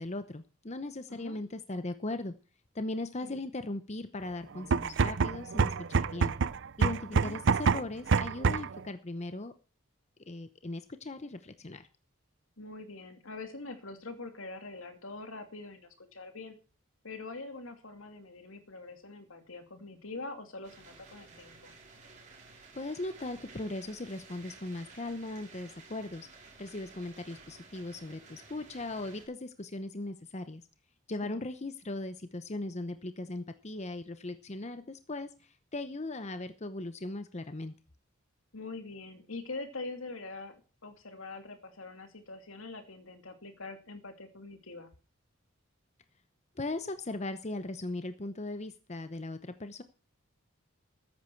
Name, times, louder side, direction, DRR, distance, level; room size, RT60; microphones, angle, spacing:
voice 1, 0.0-2.3 2.7-6.3 6.8-9.5 10.3-11.9 22.7-26.3 26.6-30.6 31.1-37.7 46.6-49.8, left 2 dB, 35° left, 10 dB, 0.8 m, -38 dB
sound 1, 4.6-8.8, right 5 dB, 60° right, 0.5 m, -27 dB
voice 2, 12.6-16.6 17.0-21.7 31.2-31.4 38.5-44.9, left 3 dB, 75° left, 7 dB, 2.5 m, -44 dB
sound 2, 20.6-29.3, right 4 dB, 35° right, 5.0 m, -54 dB
14.0 x 10.5 x 4.6 m, 0.36 s
head